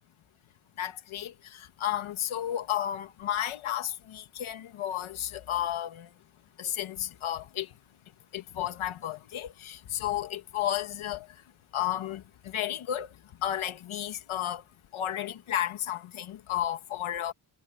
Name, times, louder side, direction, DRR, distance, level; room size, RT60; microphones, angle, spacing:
voice 1, 0.8-1.3 1.8-6.1 6.6-7.7 8.3-11.3 11.7-12.2 12.5-13.1 13.4-14.6 14.9-17.3, left 11 dB, 85° left, 1.9 m, -32 dB
cardioid pair, 65°, 47 cm